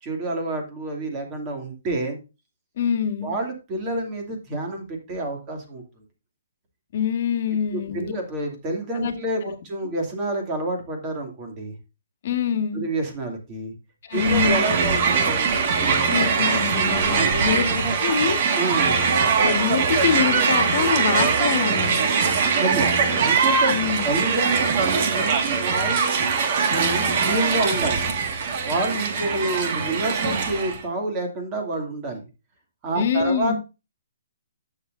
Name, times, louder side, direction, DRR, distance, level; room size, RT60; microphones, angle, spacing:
voice 1, 0.0-2.2 3.2-5.8 7.7-11.7 12.7-13.7 14.1-15.5 15.8-16.1 16.3-16.4 17.1-18.0 18.5-19.0 22.6-22.9 23.2-23.7 24.0-26.2 26.7-28.0 28.6-32.2 32.8-33.6, right 2 dB, 20° right, 2.6 m, -28 dB
voice 2, 2.8-3.3 6.9-8.1 8.9-9.1 9.4-9.5 12.2-12.8 14.0-14.6 16.1-18.4 19.3-22.1 23.7-24.3 32.9-33.5, left 7 dB, 45° left, 1.6 m, -25 dB
Crowd, 14.1-30.8, right 5 dB, 40° right, 1.9 m, -22 dB
11.5 x 7.4 x 2.7 m
hypercardioid pair, 160°, 0 cm